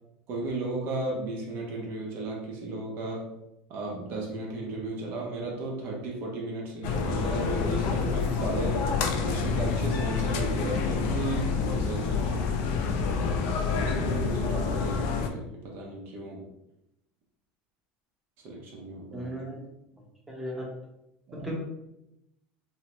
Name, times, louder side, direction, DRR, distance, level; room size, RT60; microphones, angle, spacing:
voice 1, 0.3-3.2 3.7-8.8 9.3-12.6 13.7-16.5 18.4-19.3 21.3-21.5, right 2 dB, 55° right, -1 dB, 0.7 m, -35 dB
sound 1, 6.8-15.3, left 5 dB, 70° left, 0.4 m, -28 dB
voice 2, 19.1-19.6 20.3-20.7 21.3-21.6, equal, 5° right, -3 dB, 0.8 m, -35 dB
2.8 x 2.1 x 2.9 m, 0.86 s
supercardioid pair, 115°, 4 cm